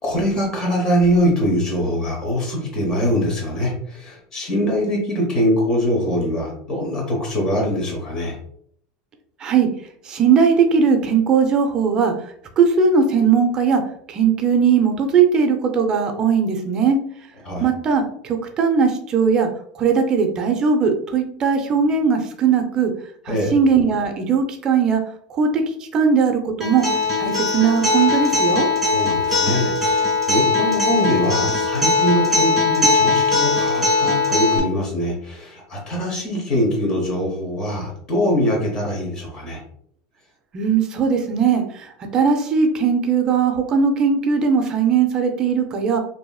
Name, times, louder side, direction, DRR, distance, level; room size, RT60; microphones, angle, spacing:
voice 1, 0.0-8.4 17.4-17.7 23.3-23.5 28.9-39.6, equal, 25° left, -1 dB, 1.0 m, -23 dB
voice 2, 10.0-12.1 12.6-13.8 14.1-17.0 17.6-19.5 19.8-22.9 23.3-25.0 25.3-25.6 25.9-26.9 27.2-28.7 40.5-46.0, right 6 dB, 30° right, 4 dB, 0.5 m, -19 dB
Acoustic guitar, 26.6-34.6, left 3 dB, ahead, 1.2 m, -19 dB
2.9 x 2.7 x 2.2 m, 0.65 s
supercardioid pair, 145°, 3 cm